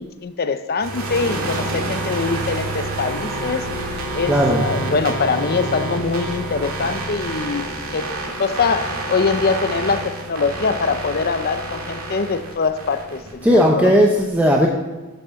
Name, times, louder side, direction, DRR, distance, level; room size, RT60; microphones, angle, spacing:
voice 1, 0.0-3.7 4.1-13.9, left 4 dB, 45° left, 11 dB, 0.6 m, -23 dB
sound 1, 0.8-13.6, right 2 dB, 80° right, 2.3 m, -28 dB
voice 2, 4.3-4.7 13.4-14.7, equal, 10° right, -1 dB, 0.8 m, -15 dB
8.7 x 6.1 x 7.0 m, 1.2 s
head